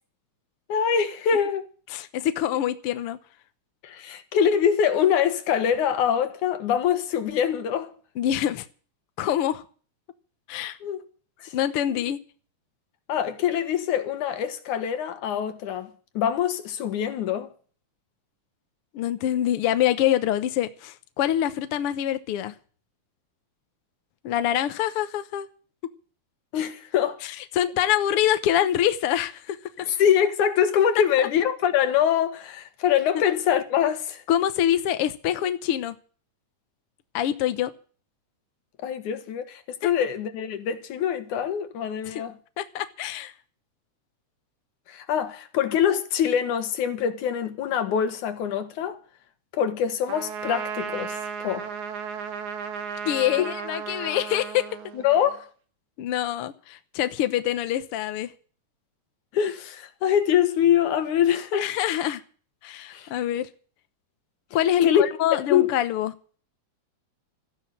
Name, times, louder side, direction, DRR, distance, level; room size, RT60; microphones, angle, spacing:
voice 1, 0.7-1.7 3.8-7.9 10.8-11.0 11.4-11.5 11.9-12.0 13.1-17.5 26.5-27.2 29.9-34.2 38.8-42.4 44.9-49.0 49.5-51.7 53.4-53.5 54.9-55.5 59.3-61.7 62.9-63.1 64.8-65.0 65.3-65.7, left 9 dB, 80° left, 2.9 m, -24 dB
voice 2, 1.9-3.2 8.2-8.6 9.2-9.6 10.5-10.8 11.5-12.2 18.9-22.5 24.2-25.5 27.2-29.6 30.9-31.3 34.3-35.9 37.1-37.7 39.8-39.9 42.1-42.2 42.6-43.3 53.0-54.7 56.0-58.3 61.5-62.2 62.6-63.5 64.5-66.1, left 11 dB, 65° left, 1.6 m, -25 dB
Trumpet, 50.1-55.3, right 6 dB, 75° right, 2.8 m, -34 dB
14.0 x 10.5 x 7.4 m
omnidirectional pair, 3.5 m